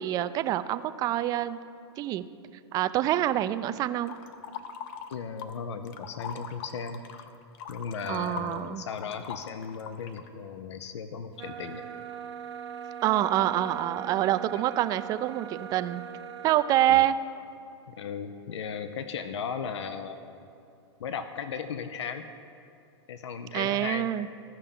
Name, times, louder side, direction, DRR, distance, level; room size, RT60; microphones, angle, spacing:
voice 1, 0.0-1.6 2.0-2.2 2.7-4.1 8.1-8.8 13.0-16.0 16.4-17.2 23.5-24.3, right 13 dB, 25° right, 12 dB, 0.3 m, -26 dB
sound 1, 4.1-5.6 5.9-10.3, left 8 dB, 50° left, 0.7 m, -41 dB
voice 2, 5.1-7.0 7.7-11.9 14.5-14.6 16.9-17.0 17.9-20.5 21.0-22.3 23.1-24.1, left 6 dB, 85° left, 10 dB, 0.6 m, -36 dB
sound 2, 11.4-16.9, right 8 dB, 80° right, 0.9 m, -40 dB
15.5 x 5.6 x 3.6 m, 2.5 s
hypercardioid pair, 130°, 14 cm